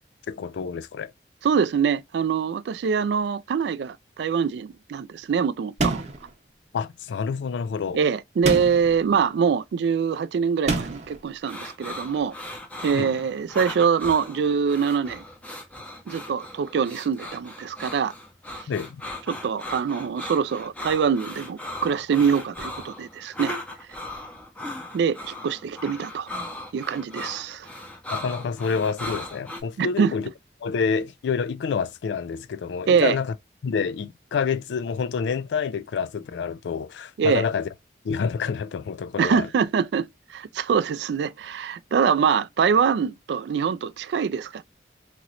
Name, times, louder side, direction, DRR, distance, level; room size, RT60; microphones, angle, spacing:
voice 1, 0.3-1.1 6.7-8.0 12.9-13.2 18.7-19.0 28.1-30.3 30.6-33.3 33.6-37.7 38.0-39.5, left 5 dB, 85° left, 0.3 m, -28 dB
voice 2, 1.4-6.0 7.9-12.3 12.8-15.2 16.1-18.1 19.3-23.6 24.9-26.3 26.7-27.7 29.8-30.1 32.9-33.2 37.2-37.4 39.2-44.6, right 6 dB, 75° right, 0.3 m, -24 dB
sound 1, 5.8-6.3 8.4-9.0 10.7-11.2, right 3 dB, 40° right, 0.7 m, -26 dB
sound 2, 11.4-29.6, left 1 dB, 10° left, 0.5 m, -37 dB
3.0 x 2.9 x 2.4 m
head